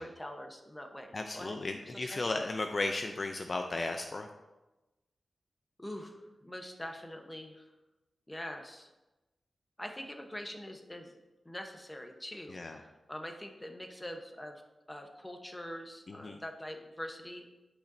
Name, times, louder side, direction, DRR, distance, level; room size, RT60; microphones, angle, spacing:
voice 1, 0.0-1.6 1.9-2.2 5.8-7.6 8.3-8.9 9.8-11.2 11.4-14.6 14.9-17.5, left 1 dB, 15° left, 4 dB, 1.0 m, -44 dB
voice 2, 1.1-4.3 12.5-12.8 16.1-16.4, left 2 dB, 50° left, 5 dB, 0.5 m, -35 dB
12.0 x 5.1 x 2.7 m, 1.0 s
cardioid pair, 70°, 0 cm